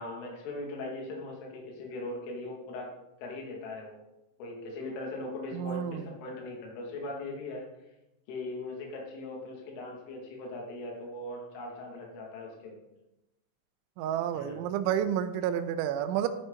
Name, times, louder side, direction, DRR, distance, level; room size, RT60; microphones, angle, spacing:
voice 1, 0.0-2.9 3.2-4.0 4.4-7.6 8.3-12.8 14.3-14.6, left 2 dB, 75° left, -1 dB, 4.9 m, -39 dB
voice 2, 5.5-6.1 14.0-16.3, right 10 dB, 80° right, 9 dB, 2.9 m, -30 dB
14.0 x 9.4 x 4.0 m, 0.93 s
omnidirectional pair, 5.8 m